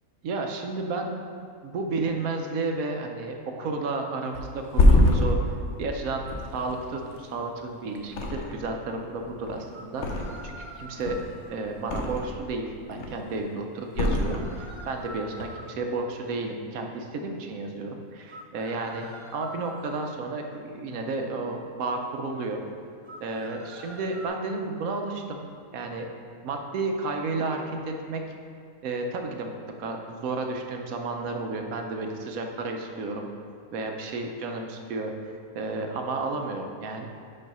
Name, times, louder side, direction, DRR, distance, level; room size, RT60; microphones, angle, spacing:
voice 1, 0.2-1.1 1.6-5.4 5.8-6.2 6.5-10.1 10.4-11.2 11.5-19.1 19.3-22.6 23.2-25.4 25.7-26.1 26.4-28.2 28.8-29.5 29.8-33.3 33.7-37.1, right 3 dB, 75° right, 3 dB, 1.1 m, -32 dB
Thump thud, 4.3-7.6 8.1-8.8 9.1-10.6 10.9-12.5 12.8-13.4 13.9-14.9 15.2-15.4, left 1 dB, 60° left, 1.0 m, -25 dB
sound 1, 6.8-6.9 9.7-11.5 13.9-15.7 18.3-20.1 23.0-24.3, right 1 dB, 40° right, 0.4 m, -45 dB
5.6 x 5.1 x 5.4 m, 2.2 s
omnidirectional pair, 1.5 m